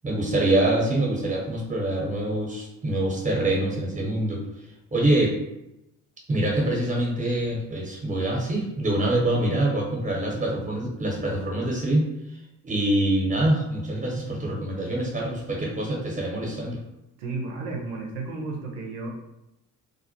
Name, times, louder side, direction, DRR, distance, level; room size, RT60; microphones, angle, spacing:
voice 1, 0.0-4.4 4.9-5.4 6.3-12.1 12.6-16.8, right 1 dB, 15° right, -1 dB, 0.8 m, -25 dB
voice 2, 17.2-19.1, right 3 dB, 80° right, 0 dB, 0.6 m, -33 dB
2.2 x 2.1 x 2.8 m, 0.88 s
figure-of-eight pair, 45°, 45 cm